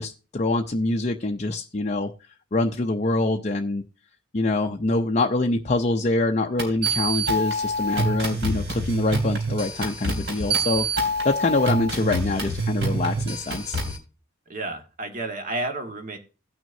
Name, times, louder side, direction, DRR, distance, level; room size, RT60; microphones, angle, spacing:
voice 1, 0.0-2.1 2.5-3.8 4.3-13.8, left 2 dB, 35° left, 3 dB, 0.6 m, -25 dB
sound 1, 6.6-14.0, right 1 dB, 60° right, 3.7 m, -26 dB
voice 2, 14.5-16.2, right 2 dB, 40° right, 4 dB, 1.8 m, -31 dB
18.0 x 6.1 x 2.7 m, 0.33 s
head